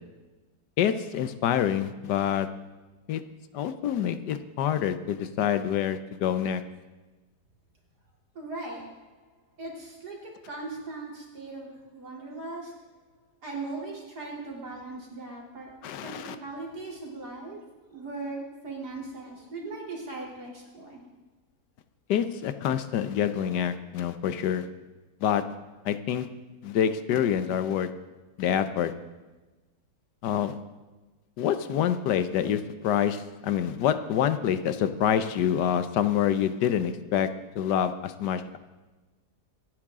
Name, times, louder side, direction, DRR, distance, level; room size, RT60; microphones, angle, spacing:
voice 1, 0.8-2.5 3.1-3.2 3.5-6.6 15.8-16.4 22.1-24.7 25.2-25.4 25.8-26.3 26.6-27.9 28.4-28.9 30.2-30.6 31.4-37.3 37.5-38.6, left 9 dB, 90° left, 11 dB, 1.4 m, -26 dB
voice 2, 8.4-9.1 9.6-12.7 13.4-15.7 16.0-21.0, right 3 dB, 70° right, -3 dB, 3.7 m, -39 dB
25.5 x 9.7 x 3.7 m, 1.2 s
omnidirectional pair, 1.8 m